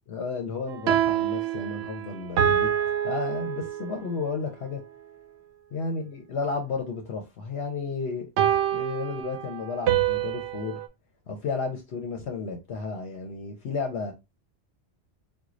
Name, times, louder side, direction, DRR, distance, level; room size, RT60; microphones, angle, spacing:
voice 1, 0.1-2.7 3.0-4.8 5.7-8.3 8.7-10.8 11.3-14.1, left 4 dB, 75° left, 1.0 m, -32 dB
sound 1, 0.7-4.1 8.4-10.9, right 10 dB, 80° right, 0.8 m, -26 dB
4.5 x 2.3 x 2.4 m
omnidirectional pair, 1.1 m